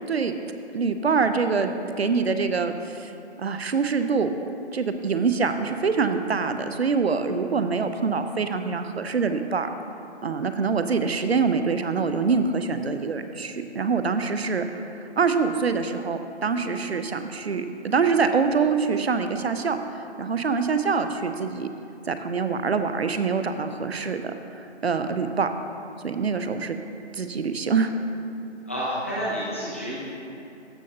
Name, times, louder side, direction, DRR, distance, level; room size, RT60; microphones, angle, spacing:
voice 1, 0.7-3.1 3.4-4.3 4.7-9.7 10.2-14.8 15.2-19.8 20.2-21.7 22.1-25.5 26.0-26.8 27.1-27.9, right 5 dB, 60° right, 8 dB, 0.6 m, -25 dB
voice 2, 28.7-30.0, equal, 10° left, -9 dB, 0.7 m, -29 dB
13.0 x 6.5 x 2.8 m, 2.7 s
figure-of-eight pair, 165°, 35 cm